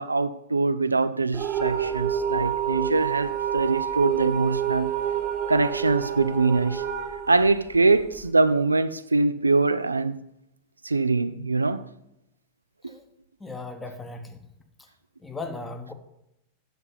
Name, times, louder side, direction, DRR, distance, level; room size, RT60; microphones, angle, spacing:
voice 1, 0.0-4.9 5.5-6.8 7.3-10.2 10.8-11.8 12.8-12.9, right 3 dB, 80° right, 0.3 m, -23 dB
sound 1, 1.3-8.3, right 8 dB, 30° right, 1.0 m, -28 dB
voice 2, 13.4-14.4 15.2-15.9, left 3 dB, 10° left, 1.1 m, -37 dB
8.0 x 6.5 x 5.7 m
figure-of-eight pair, 90°, 0 cm